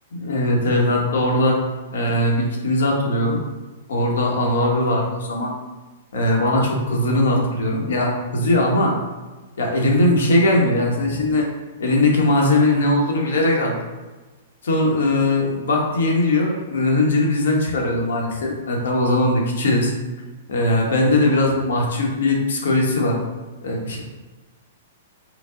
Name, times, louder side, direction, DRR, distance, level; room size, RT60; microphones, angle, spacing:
voice 1, 0.1-1.6 1.9-3.4 3.9-5.5 6.1-8.9 9.6-11.5 11.8-13.8 14.6-19.9 20.5-23.2 23.6-24.0, left 1 dB, 85° left, 0 dB, 1.1 m, -20 dB
5.0 x 2.0 x 3.7 m, 1.2 s
hypercardioid pair, 180°, 0 cm